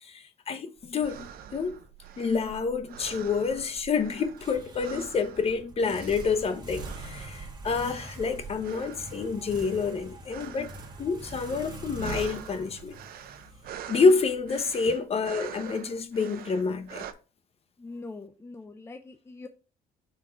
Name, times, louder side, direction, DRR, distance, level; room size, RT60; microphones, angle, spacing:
voice 1, 0.0-1.8 2.2-10.7 11.0-13.0 13.9-17.0, left 4 dB, 35° left, 0.8 m, -28 dB
sound 1, 0.8-17.1, right 9 dB, 60° right, 0.7 m, -45 dB
sound 2, 4.4-14.2, right 1 dB, 25° right, 1.6 m, -43 dB
voice 2, 17.8-19.5, left 3 dB, 15° left, 0.5 m, -43 dB
5.7 x 3.7 x 4.5 m
cardioid pair, 110°, 17 cm